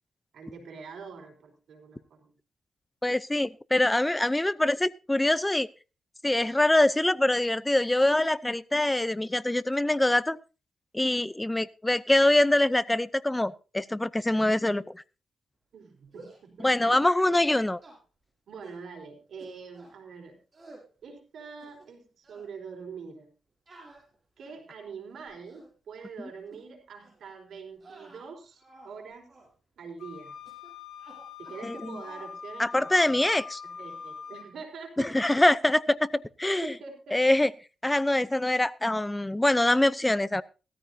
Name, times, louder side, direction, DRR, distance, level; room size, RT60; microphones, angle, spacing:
voice 1, 0.3-2.3 15.7-17.5 18.5-20.4 21.0-23.3 24.4-29.4 29.8-30.4 31.4-33.0 33.6-35.1 35.4-35.5 36.6-37.2, right 5 dB, 75° right, 2 dB, 4.4 m, -44 dB
voice 2, 3.0-5.7 6.2-10.4 10.9-15.0 16.6-17.8 31.6-32.0 32.6-33.6 35.0-36.7 37.1-37.5 37.8-40.4, left 1 dB, 10° left, 17 dB, 0.6 m, -24 dB
sound 1, 16.1-16.5 16.9-17.1 17.4-18.0 18.6-18.8 19.4-20.0 20.5-20.9 21.4-22.0 22.2-22.5 23.7-24.7 25.3-25.7 26.5-26.6 27.0-27.2 27.7-29.0 29.3-29.5 30.4-30.7 31.0-31.7 32.0-32.3, right 3 dB, 35° right, 7.1 m, -51 dB
Wind instrument woodwind instrument, 30.0-34.5, left 6 dB, 90° left, 4.0 m, -43 dB
17.0 x 14.0 x 2.8 m, 0.33 s
cardioid pair, 90°, 0 cm